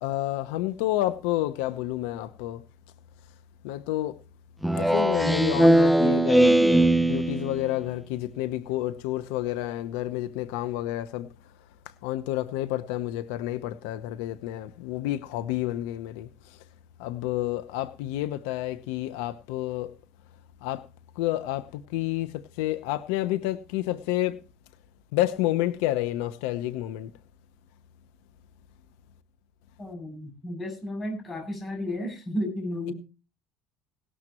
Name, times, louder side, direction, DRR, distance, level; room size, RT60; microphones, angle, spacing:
voice 1, 0.0-2.6 3.6-4.2 4.7-11.3 12.0-16.3 17.0-19.9 20.6-20.8 21.2-22.3 22.6-24.4 25.1-27.1, left 14 dB, 85° left, 0.9 m, -29 dB
Speech synthesizer, 4.6-7.7, right 1 dB, ahead, 0.6 m, -20 dB
voice 2, 29.8-32.9, left 1 dB, 20° left, 7.7 m, -33 dB
18.0 x 12.5 x 3.0 m
cardioid pair, 140°, 0 cm